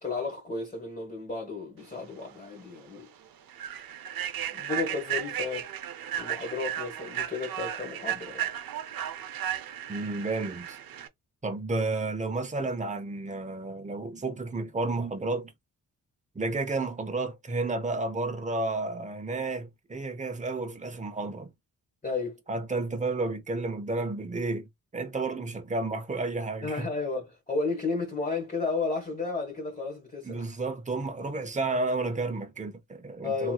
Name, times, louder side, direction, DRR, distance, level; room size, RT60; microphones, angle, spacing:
voice 1, 0.0-3.1 4.5-5.7 6.2-8.5 22.0-22.4 26.6-30.6 33.2-33.5, left 4 dB, 20° left, 1.3 m, -33 dB
Human voice / Train, 2.2-2.4 2.8-3.0 3.5-11.1, right 10 dB, 85° right, 0.6 m, -35 dB
voice 2, 9.9-10.8 11.4-15.5 16.3-21.5 22.5-24.7 24.9-26.9 30.2-33.5, right 3 dB, 20° right, 0.8 m, -31 dB
3.0 x 2.8 x 2.3 m
cardioid pair, 75°, 34 cm